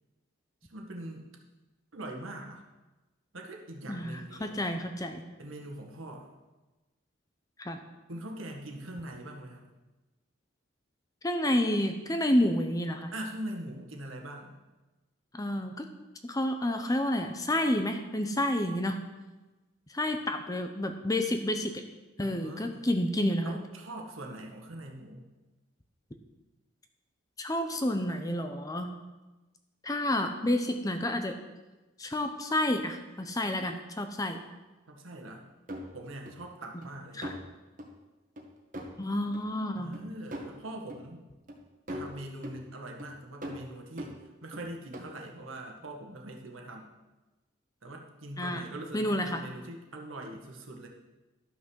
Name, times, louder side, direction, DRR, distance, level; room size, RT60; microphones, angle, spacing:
voice 1, 0.7-1.3 1.9-2.6 3.3-4.8 5.4-6.3 8.1-9.7 13.1-14.6 22.2-22.9 23.4-25.3 34.9-35.5 35.9-37.2 39.7-41.3 41.9-46.9 47.8-50.9, right 1 dB, 75° right, 1 dB, 1.7 m, -42 dB
voice 2, 3.9-5.2 7.6-7.8 11.2-13.1 15.3-15.9 16.2-19.0 19.9-21.8 22.2-23.6 27.4-28.9 29.8-31.4 32.0-34.4 37.1-37.3 39.0-39.9 48.4-48.6 48.9-49.4, left 1 dB, 15° left, 6 dB, 0.7 m, -29 dB
sound 1, 35.7-36.4 36.8-36.9 37.2-37.5 37.8-37.9 38.4-38.5 38.7-38.9 39.3-39.4 39.9-40.0 40.3-40.5 40.9-41.0 41.5-41.6 41.9-42.6 43.0-43.1 43.4-44.6 44.9-45.1, equal, 40° right, 1.4 m, -41 dB
12.0 x 6.0 x 6.3 m, 1.1 s
head